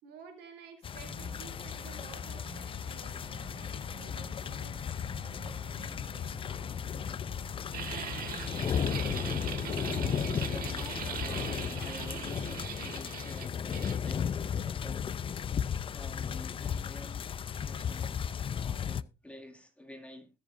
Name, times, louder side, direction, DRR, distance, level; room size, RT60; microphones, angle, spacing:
voice 1, 0.0-6.8 8.0-8.8, right 6 dB, 85° right, 3.6 m, -54 dB
sound 1, 0.8-19.0, left 8 dB, 30° left, 0.5 m, -35 dB
sound 2, 1.0-9.6, right 4 dB, 30° right, 4.8 m, -51 dB
sound 3, 7.7-14.0, right 8 dB, 60° right, 1.7 m, -40 dB
voice 2, 9.8-15.2 15.9-17.3 17.6-18.3 18.6-20.3, left 1 dB, 5° left, 2.3 m, -49 dB
21.0 x 7.5 x 2.6 m
cardioid pair, 110°, 17 cm